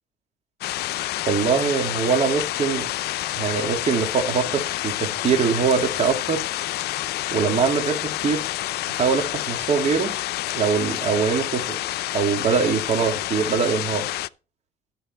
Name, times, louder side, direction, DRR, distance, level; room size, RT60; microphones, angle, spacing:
sound 1, 0.6-14.3, left 16 dB, 70° left, 0.5 m, -28 dB
voice 1, 1.3-2.9 3.3-6.4 7.3-8.4 8.9-10.1 10.5-11.8 12.1-14.0, right 6 dB, 40° right, 2.8 m, -23 dB
12.0 x 6.8 x 4.5 m
cardioid pair, 110°, 17 cm